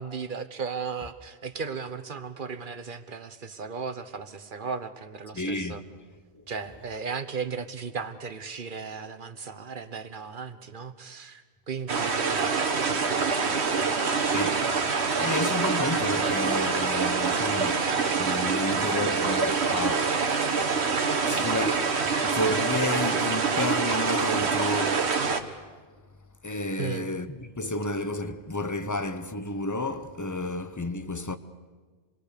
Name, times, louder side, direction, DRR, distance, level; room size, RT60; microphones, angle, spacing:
voice 1, 0.0-5.8 6.5-13.9 26.8-27.1, right 5 dB, 50° right, 1.2 m, -36 dB
voice 2, 5.3-5.8 14.3-17.9 18.2-20.8 21.2-25.1 26.4-31.4, left 2 dB, 20° left, 0.8 m, -31 dB
sound 1, 11.9-25.4, right 5 dB, 70° right, 1.6 m, -25 dB
27.0 x 21.0 x 6.8 m
omnidirectional pair, 1.2 m